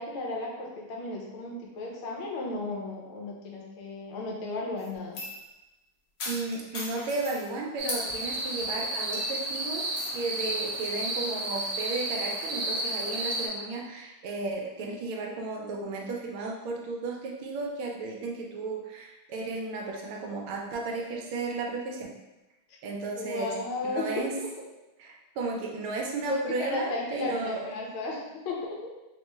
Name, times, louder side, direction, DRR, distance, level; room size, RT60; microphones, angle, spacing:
voice 1, 0.0-5.2 23.1-24.1 26.3-28.9, left 2 dB, 85° left, -2 dB, 1.6 m, -34 dB
sound 1, 4.8-5.5 6.2-7.5 7.9-8.1 8.6-8.7 9.1-9.4 10.0-10.1, left 2 dB, 70° left, 0.8 m, -37 dB
voice 2, 6.3-9.9 10.1-22.1 22.8-23.5 23.8-24.3 25.0-27.7, right 3 dB, 85° right, 0 dB, 1.5 m, -34 dB
sound 2, 7.8-13.5, right 1 dB, 70° right, 1.2 m, -32 dB
3.9 x 2.2 x 3.0 m, 1.0 s
omnidirectional pair, 2.3 m